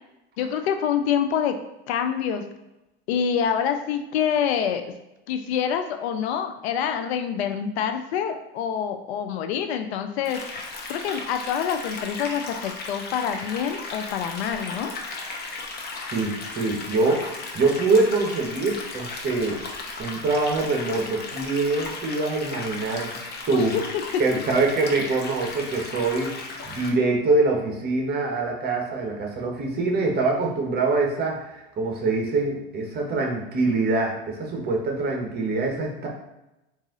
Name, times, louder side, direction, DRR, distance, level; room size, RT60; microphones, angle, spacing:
voice 1, 0.4-1.6 1.9-2.4 3.1-4.9 5.3-10.4 10.9-14.9 23.5-23.8, left 8 dB, 70° left, 7 dB, 0.6 m, -26 dB
sound 1, 10.2-26.9, left 3 dB, 30° left, 0.9 m, -36 dB
voice 2, 16.1-19.6 20.0-23.2 23.5-23.8 24.2-26.4 26.7-36.1, right 3 dB, 30° right, 1 dB, 1.1 m, -24 dB
4.0 x 2.6 x 3.7 m, 0.96 s
hypercardioid pair, 105°, 33 cm